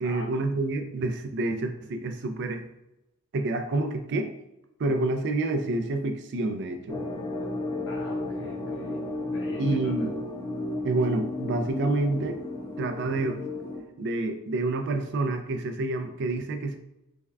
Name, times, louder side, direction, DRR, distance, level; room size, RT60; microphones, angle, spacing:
voice 1, 0.0-2.6 3.3-4.3 4.8-7.0 9.6-10.1 10.8-12.4 12.8-13.4 14.0-16.8, right 2 dB, 55° right, 6 dB, 0.4 m, -28 dB
sound 1, 6.9-13.8, left 2 dB, 20° left, 0.4 m, -33 dB
voice 2, 7.9-9.0 9.3-10.1, left 2 dB, 65° left, -3 dB, 0.6 m, -43 dB
3.4 x 2.2 x 3.4 m, 0.90 s
head